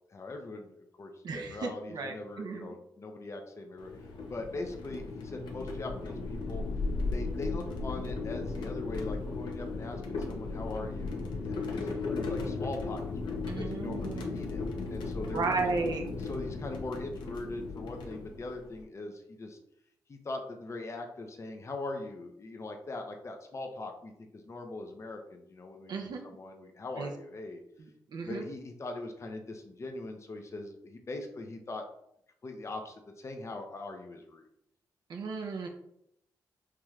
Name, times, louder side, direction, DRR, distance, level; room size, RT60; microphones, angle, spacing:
voice 1, 0.1-6.6 7.1-14.6 14.9-15.7 16.2-19.6 20.1-27.6 28.2-31.8 32.4-34.4, left 2 dB, 40° left, 4 dB, 0.6 m, -41 dB
voice 2, 1.2-2.8 13.5-14.6 15.2-16.1 25.9-26.2 27.0-27.1 27.8-28.4 35.1-35.7, right 4 dB, 65° right, 3 dB, 0.6 m, -35 dB
sound 1, 3.8-18.8, left 3 dB, 80° left, 0.7 m, -36 dB
4.7 x 3.0 x 2.4 m, 0.76 s
cardioid pair, 65°, 8 cm